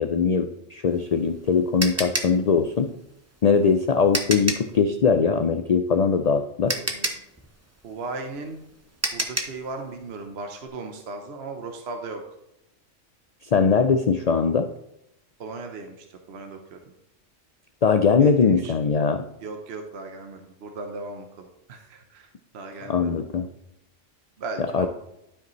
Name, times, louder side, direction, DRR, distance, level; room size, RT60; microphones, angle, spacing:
voice 1, 0.0-2.9 3.4-6.7 13.5-14.7 17.8-19.2 22.9-23.5 24.7-24.9, left 5 dB, 90° left, 7 dB, 0.3 m, -21 dB
sound 1, 0.9-4.8 6.2-6.3 6.7-9.7, right 2 dB, 15° right, 0.6 m, -29 dB
voice 2, 6.6-7.2 7.8-8.6 9.1-12.2 15.4-16.8 18.2-18.7 19.4-23.2 24.4-24.9, right 3 dB, 60° right, 4 dB, 1.0 m, -37 dB
12.0 x 5.2 x 3.1 m, 0.84 s
omnidirectional pair, 1.3 m